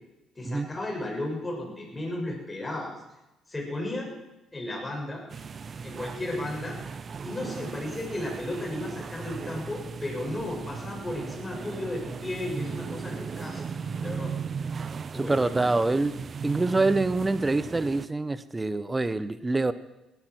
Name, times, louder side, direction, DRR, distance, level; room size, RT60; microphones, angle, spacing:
voice 1, 0.4-3.0 3.5-4.1 4.5-5.2 5.8-6.8 7.2-13.6 14.0-14.3 15.1-15.7, left 1 dB, 20° left, -2 dB, 7.2 m, -34 dB
sound 1, 5.3-18.1, right 6 dB, 45° right, 0.6 m, -37 dB
voice 2, 15.1-16.1 16.4-19.7, right 3 dB, 20° right, 15 dB, 1.0 m, -25 dB
17.5 x 12.0 x 6.4 m, 1.0 s
supercardioid pair, 65°, 0 cm